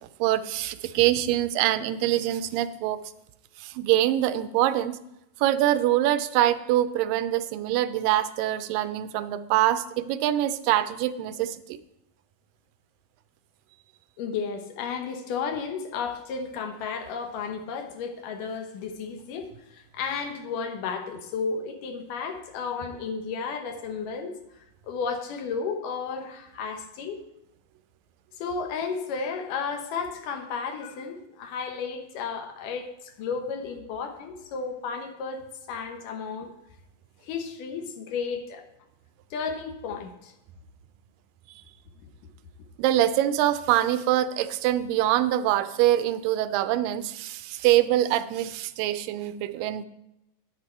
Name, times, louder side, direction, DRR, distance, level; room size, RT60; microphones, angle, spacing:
voice 1, 0.2-3.0 3.6-5.0 5.4-11.8 42.8-49.9, right 13 dB, 90° right, 12 dB, 2.3 m, -24 dB
voice 2, 14.2-24.4 24.9-27.2 28.4-36.5 37.2-38.7 39.3-40.3, left 5 dB, 75° left, 6 dB, 2.5 m, -33 dB
9.8 x 9.0 x 4.4 m, 0.86 s
omnidirectional pair, 3.9 m